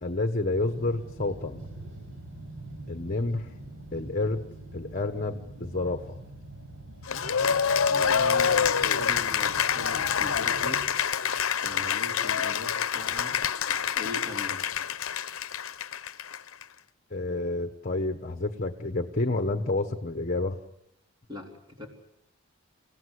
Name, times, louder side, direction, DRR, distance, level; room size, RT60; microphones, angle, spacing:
voice 1, 0.0-1.6 2.9-3.5 3.9-4.4 4.7-6.2 17.1-20.6, left 2 dB, 40° left, 7 dB, 1.2 m, -29 dB
sound 1, 0.5-10.9, right 2 dB, 75° right, 5.7 m, -44 dB
Cheering / Applause, 7.1-16.6, left 7 dB, 80° left, 0.8 m, -27 dB
voice 2, 7.8-10.9 11.5-13.4 14.0-14.6 21.3-21.9, left 2 dB, 20° right, 1 dB, 3.7 m, -40 dB
29.0 x 17.0 x 8.2 m, 0.82 s
head